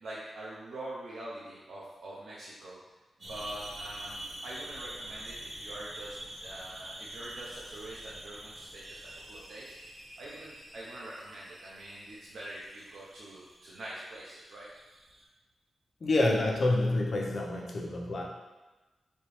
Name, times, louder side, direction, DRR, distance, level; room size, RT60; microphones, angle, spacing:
voice 1, 0.0-2.8 3.2-9.7 10.2-14.7, right 1 dB, 90° right, -6 dB, 0.6 m, -44 dB
sound 1, 3.2-15.2, right 1 dB, 30° right, 0.9 m, -46 dB
voice 2, 16.0-18.2, left 2 dB, 50° left, -1 dB, 0.7 m, -27 dB
4.3 x 2.9 x 3.2 m, 1.2 s
wide cardioid pair, 105°, 0 cm